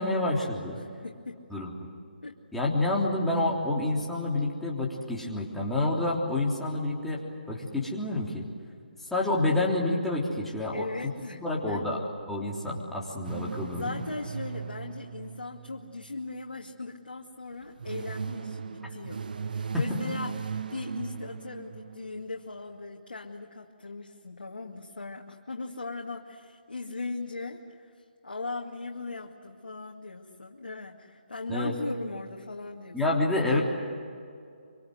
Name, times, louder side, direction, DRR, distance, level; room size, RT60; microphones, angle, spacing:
voice 1, 0.0-0.8 1.5-1.7 2.5-7.2 7.5-8.5 9.0-10.9 11.4-12.0 12.3-14.0 31.5-31.7 32.9-33.6, left 2 dB, 5° left, -4 dB, 3.4 m, -28 dB
voice 2, 0.8-1.4 2.2-2.4 10.7-11.8 13.7-33.3, left 3 dB, 85° left, -1 dB, 2.3 m, -39 dB
sound 1, 13.2-16.6 17.5-22.3, right 6 dB, 60° right, 0.9 m, -38 dB
25.5 x 25.5 x 7.9 m, 2.4 s
figure-of-eight pair, 150°, 5 cm